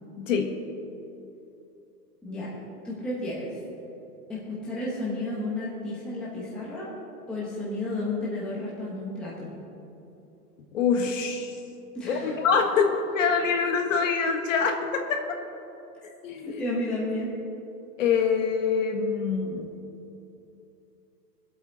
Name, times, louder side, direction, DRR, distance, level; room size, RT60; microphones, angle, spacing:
voice 1, 0.2-0.5 10.7-11.6 12.0-15.4 16.2-16.6 18.0-19.7, left 5 dB, 50° left, 4 dB, 1.5 m, -25 dB
voice 2, 2.8-3.6 4.3-6.9 7.3-9.5 11.9-12.4 16.5-17.3, left 2 dB, ahead, -8 dB, 0.9 m, -32 dB
23.0 x 8.1 x 4.2 m, 2.9 s
hypercardioid pair, 170°, 49 cm